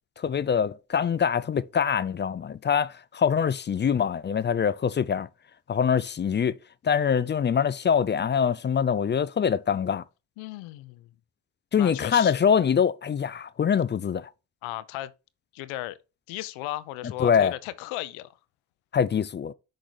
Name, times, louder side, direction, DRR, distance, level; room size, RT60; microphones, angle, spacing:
voice 1, 0.2-5.3 5.7-6.6 6.8-10.0 11.7-14.3 17.2-17.5 18.9-19.5, left 7 dB, 25° left, 0.4 m, -24 dB
voice 2, 10.4-11.1 11.7-12.4 14.6-15.1 15.5-16.0 16.3-18.3, left 16 dB, 80° left, 0.7 m, -35 dB
6.4 x 3.9 x 4.6 m
hypercardioid pair, 50°, 47 cm